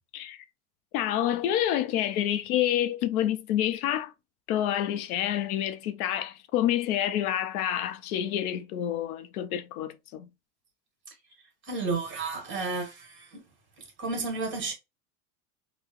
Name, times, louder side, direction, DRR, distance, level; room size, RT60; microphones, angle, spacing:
voice 1, 0.1-0.4 0.9-4.1 4.5-10.3, left 11 dB, 85° left, 0.6 m, -28 dB
voice 2, 11.6-13.4 13.8-14.7, right 3 dB, 25° right, 1.5 m, -32 dB
3.8 x 2.1 x 2.9 m
supercardioid pair, 135°, 43 cm